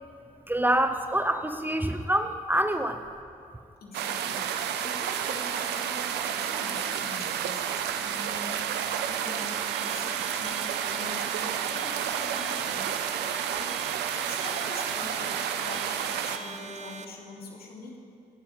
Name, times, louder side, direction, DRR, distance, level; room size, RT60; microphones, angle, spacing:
voice 1, 0.5-3.0, right 1 dB, 10° right, 8 dB, 0.8 m, -26 dB
voice 2, 3.8-12.9 13.5-13.8 14.1-18.0, left 3 dB, 55° left, -1 dB, 3.0 m, -44 dB
sound 1, 3.9-16.4, right 9 dB, 65° right, 0.9 m, -31 dB
sound 2, 9.1-17.0, right 5 dB, 40° right, 0.9 m, -42 dB
17.5 x 8.5 x 7.3 m, 2.6 s
hypercardioid pair, 45°, 18 cm